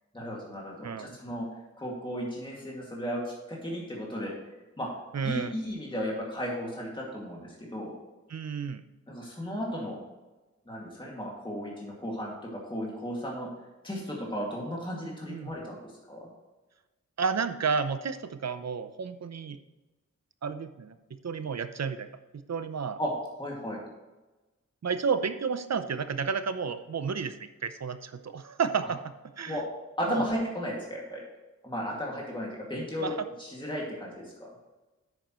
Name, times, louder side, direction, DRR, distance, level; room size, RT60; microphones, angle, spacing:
voice 1, 0.1-1.5 1.8-4.3 4.8-4.9 5.2-8.0 9.1-10.0 10.7-13.5 13.8-16.3 23.0-23.1 23.4-23.8 28.8-28.9 29.5-29.6 30.0-31.2 31.6-33.1 33.4-34.5, equal, 15° left, -3 dB, 2.3 m, -35 dB
voice 2, 0.8-1.2 5.1-5.5 8.3-8.8 15.3-15.5 17.2-19.6 20.4-21.0 21.2-22.1 22.3-23.0 24.8-29.6 30.1-30.3 33.0-33.3, right 5 dB, 65° right, 10 dB, 0.7 m, -31 dB
10.0 x 9.0 x 3.1 m, 1.1 s
wide cardioid pair, 110°, 29 cm